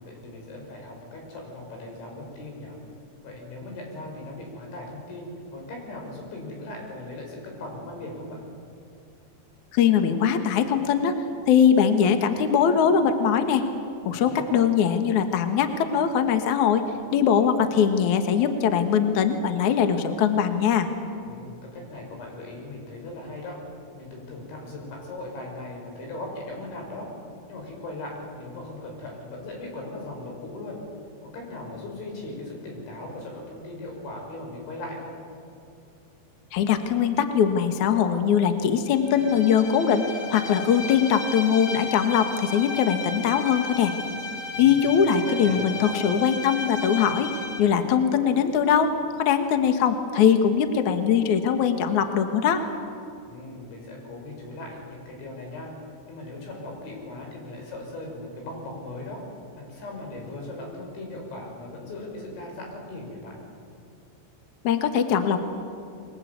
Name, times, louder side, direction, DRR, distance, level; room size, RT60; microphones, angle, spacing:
voice 1, 0.0-2.8 3.2-8.4 14.1-14.6 21.2-23.6 23.9-27.1 27.5-30.8 31.2-35.2 44.5-45.0 45.3-45.9 53.3-55.7 56.1-59.2 59.6-63.4, left 2 dB, 85° left, 1 dB, 8.3 m, -38 dB
voice 2, 9.7-11.2 11.5-13.6 14.1-16.8 17.1-20.9 36.5-43.9 44.6-47.3 47.6-52.6 64.6-65.4, left 7 dB, 60° left, 7 dB, 2.3 m, -21 dB
Bowed string instrument, 39.0-47.7, left 3 dB, 35° left, 1.3 m, -34 dB
29.0 x 22.0 x 8.3 m, 2.4 s
omnidirectional pair, 5.2 m